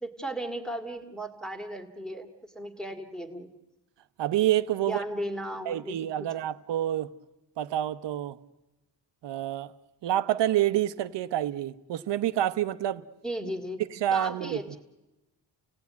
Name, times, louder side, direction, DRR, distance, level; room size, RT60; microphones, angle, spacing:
voice 1, 0.0-3.5 4.8-6.3 13.2-13.8 14.1-14.8, right 1 dB, ahead, 2.0 m, -36 dB
voice 2, 4.2-5.0 5.7-7.1 7.6-8.4 9.2-9.7 10.0-13.0 14.0-14.8, right 12 dB, 75° right, 1.0 m, -28 dB
30.0 x 17.5 x 9.5 m
wide cardioid pair, 160°, 43 cm